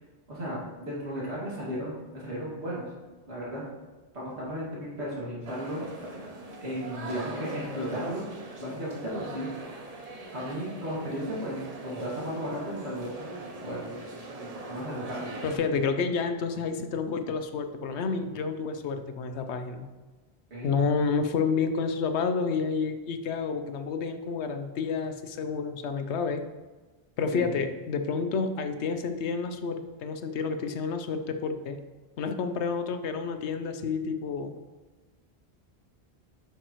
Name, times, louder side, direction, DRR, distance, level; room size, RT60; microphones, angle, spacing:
voice 1, 0.3-2.9 3.3-3.6 4.1-6.3 6.6-8.3 8.6-9.5 10.3-13.1 13.6-13.9 14.7-15.3 20.5-20.7 27.3-27.5, equal, 80° right, -6 dB, 2.5 m, -35 dB
sound 1, 5.5-15.6, right 2 dB, 40° right, 0.9 m, -40 dB
voice 2, 15.4-19.9 20.6-26.4 27.2-31.8 32.2-34.5, left 5 dB, 85° left, 8 dB, 0.9 m, -29 dB
8.9 x 5.7 x 3.0 m, 1.3 s
omnidirectional pair, 1.1 m